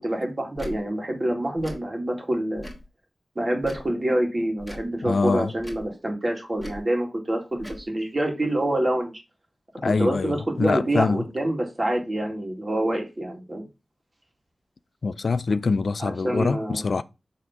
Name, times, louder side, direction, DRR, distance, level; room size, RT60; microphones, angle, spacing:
voice 1, 0.0-2.7 3.4-9.2 9.8-13.6 16.0-16.8, right 1 dB, 35° right, 2.1 m, -26 dB
Tick / Tick-tock, 0.5-0.8 1.6-1.8 2.6-2.9 3.6-3.9 4.6-4.9 5.6-5.9 6.6-6.8 7.6-7.8, left 1 dB, ahead, 2.3 m, -40 dB
voice 2, 5.0-5.5 9.8-11.2 15.0-17.0, left 4 dB, 70° left, 0.3 m, -24 dB
5.7 x 3.5 x 5.9 m
wide cardioid pair, 70°, 0 cm